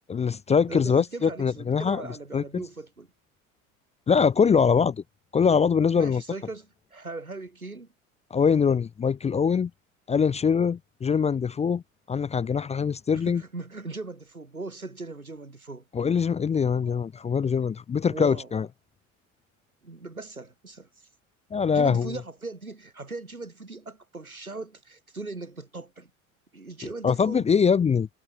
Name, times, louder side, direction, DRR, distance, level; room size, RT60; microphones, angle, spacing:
voice 1, 0.1-2.0 2.3-2.6 4.1-5.0 5.3-6.2 8.3-9.7 10.1-11.8 12.1-13.4 15.9-18.7 21.5-22.1 27.0-28.1, left 6 dB, 15° left, 0.6 m, -23 dB
voice 2, 0.7-3.1 6.0-7.9 13.1-15.8 16.8-17.0 18.0-18.5 19.8-21.1 21.7-26.1 26.5-27.5, right 3 dB, 90° right, 2.6 m, -39 dB
figure-of-eight pair, 65°, 41 cm